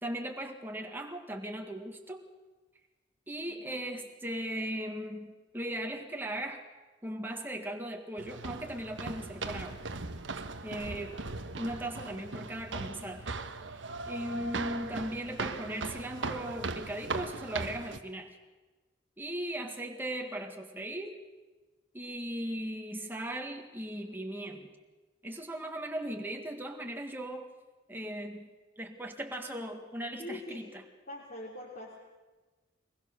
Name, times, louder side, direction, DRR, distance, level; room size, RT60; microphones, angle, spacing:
voice 1, 0.0-2.2 3.3-6.7 7.0-9.9 10.6-11.2 11.6-13.3 14.1-18.4 19.2-21.2 21.9-24.7 25.2-27.5 27.9-28.5 28.8-30.8, right 1 dB, 10° right, 3 dB, 1.8 m, -38 dB
voice 2, 3.4-3.8 30.2-30.6 31.1-32.0, left 1 dB, 50° left, -4 dB, 3.3 m, -43 dB
sound 1, 8.2-18.0, right 3 dB, 80° right, 1.3 m, -39 dB
23.5 x 20.5 x 6.7 m, 1.2 s
head